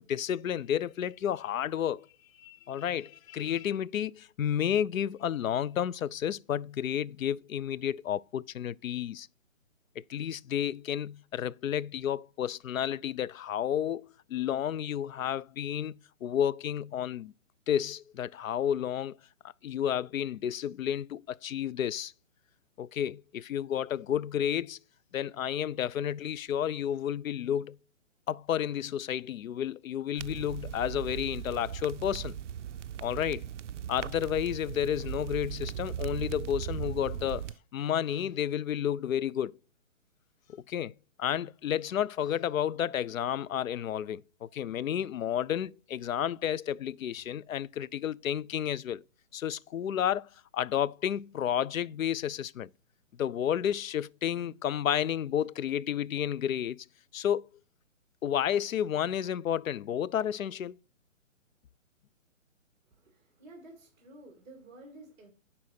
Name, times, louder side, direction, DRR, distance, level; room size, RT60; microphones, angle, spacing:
voice 1, 0.0-2.1 2.4-9.3 10.0-17.3 17.7-19.1 19.6-22.1 22.8-24.8 25.1-27.8 28.3-32.4 33.0-33.5 33.9-37.5 37.7-39.5 40.5-40.9 41.2-49.0 49.3-52.7 53.2-56.9 57.1-57.5 58.2-60.8, left 10 dB, 90° left, 0.5 m, -31 dB
sound 1, 30.2-37.6, right 10 dB, 65° right, 0.5 m, -38 dB
voice 2, 62.8-65.3, right 2 dB, 15° right, 2.1 m, -52 dB
9.9 x 4.2 x 4.3 m
hypercardioid pair, 155°, 39 cm